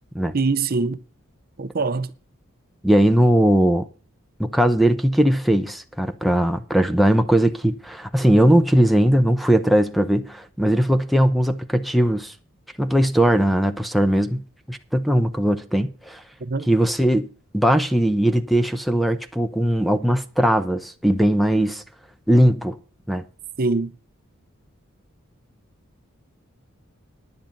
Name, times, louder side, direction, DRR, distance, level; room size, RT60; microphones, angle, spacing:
voice 1, 0.3-1.0 1.6-2.1 16.4-16.7 23.6-23.9, right 3 dB, 45° right, 0.7 m, -23 dB
voice 2, 2.8-3.8 4.4-12.3 12.8-14.4 14.7-16.2 16.7-17.3 17.5-21.8 22.3-22.8 23.1-23.2, equal, ahead, 0.7 m, -19 dB
10.5 x 9.8 x 5.3 m
head